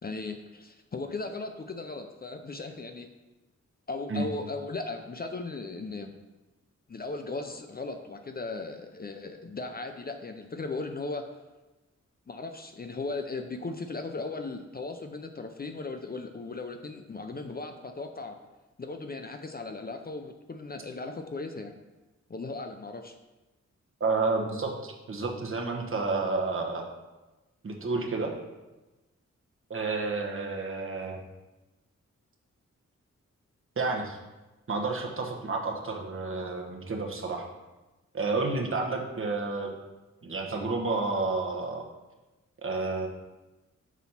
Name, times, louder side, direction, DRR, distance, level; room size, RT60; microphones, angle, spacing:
voice 1, 0.0-3.1 3.9-6.1 6.9-11.2 12.3-18.4 18.8-21.7 22.3-23.2, left 3 dB, 30° left, 6 dB, 0.5 m, -37 dB
voice 2, 24.0-26.9 27.6-28.3 29.7-31.2 33.8-34.2 34.7-37.5 38.1-39.7 40.2-41.8 42.6-43.1, right 3 dB, 45° right, 1 dB, 1.1 m, -30 dB
6.2 x 4.1 x 5.6 m, 1.1 s
wide cardioid pair, 100°, 29 cm